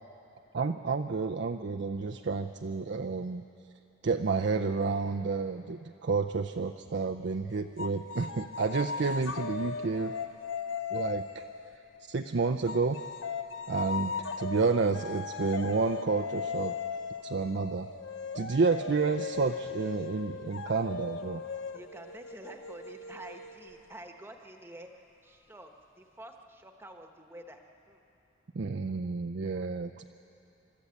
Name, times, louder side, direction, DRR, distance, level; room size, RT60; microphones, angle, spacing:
voice 1, 0.5-3.4 4.0-10.1 10.9-11.4 12.1-13.0 13.7-14.1 14.4-16.7 17.2-17.9 18.3-21.4 28.5-30.0, right 4 dB, 55° right, 5 dB, 0.5 m, -30 dB
sound 1, 7.8-12.1 12.7-24.0, left 5 dB, 65° left, 0.8 m, -38 dB
voice 2, 13.9-14.5 21.7-24.9 25.2-28.0, right 1 dB, 10° right, 4 dB, 1.1 m, -49 dB
29.0 x 13.0 x 8.5 m, 2.9 s
head